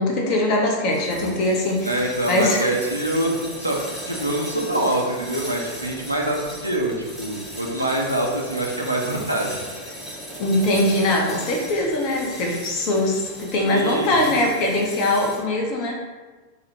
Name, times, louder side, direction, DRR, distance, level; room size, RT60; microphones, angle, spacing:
voice 1, 0.0-2.6 10.4-16.0, left 1 dB, 40° left, 0 dB, 0.5 m, -22 dB
sound 1, 0.9-15.4, equal, 10° left, 0.8 m, -37 dB
voice 2, 1.8-6.9 7.2-9.6 13.7-14.4, right 1 dB, 85° right, -1 dB, 0.4 m, -25 dB
2.4 x 2.0 x 2.8 m, 1.3 s
figure-of-eight pair, 90°, 0 cm